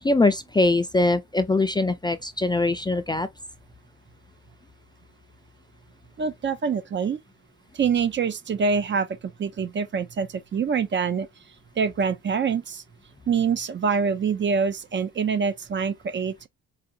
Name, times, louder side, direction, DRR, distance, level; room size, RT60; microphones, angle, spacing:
voice 1, 0.0-3.3, left 2 dB, 15° left, 0.4 m, -22 dB
voice 2, 6.2-7.2 7.7-11.3 11.8-12.8 13.3-16.3, right 6 dB, 40° right, 0.6 m, -25 dB
4.9 x 2.5 x 2.7 m
cardioid pair, 90°, 30 cm